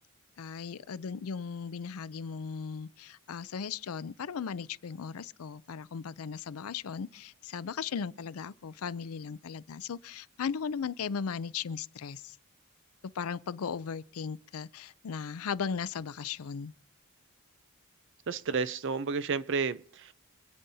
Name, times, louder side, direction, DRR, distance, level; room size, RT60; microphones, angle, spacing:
voice 1, 0.4-12.4 13.1-16.7, left 6 dB, 75° left, 0.5 m, -37 dB
voice 2, 18.3-20.1, right 5 dB, 55° right, 0.5 m, -31 dB
26.5 x 9.1 x 2.7 m
head